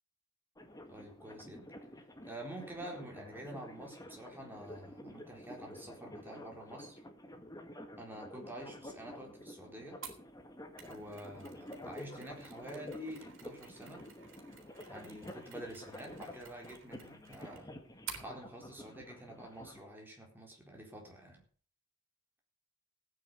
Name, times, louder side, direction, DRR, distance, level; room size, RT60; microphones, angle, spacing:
sound 1, 0.6-19.8, left 1 dB, 15° left, 1.7 m, -50 dB
voice 1, 0.9-1.7 2.2-7.0 8.0-10.0 10.8-14.0 14.9-17.7 18.2-21.4, right 1 dB, 10° right, 0 dB, 4.2 m, -48 dB
Mechanisms, 10.0-18.3, right 7 dB, 65° right, 3.8 m, -52 dB
16.0 x 9.7 x 6.8 m, 0.43 s
head